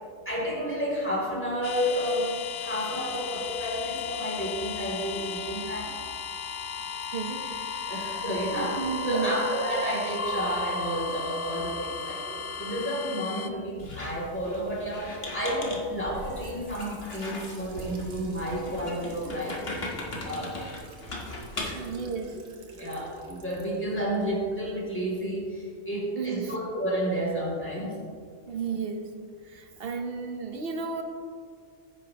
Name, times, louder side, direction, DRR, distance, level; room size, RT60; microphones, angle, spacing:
voice 1, 0.3-5.9 7.9-20.0 20.2-20.6 21.5-21.9 22.8-28.0, equal, 10° left, -4 dB, 2.7 m, -31 dB
sound 1, 1.6-13.5, left 5 dB, 60° left, 0.6 m, -35 dB
voice 2, 7.1-8.0 8.8-9.3 21.6-22.4 26.2-26.6 28.5-29.1 29.4-31.0, right 5 dB, 45° right, 5 dB, 1.1 m, -33 dB
Squeak, 13.8-21.9, left 2 dB, 45° left, 1.7 m, -39 dB
Trickle dribble / Fill (with liquid), 16.0-24.8, right 2 dB, 70° right, 1.7 m, -49 dB
15.0 x 9.3 x 3.0 m, 2.1 s
omnidirectional pair, 1.5 m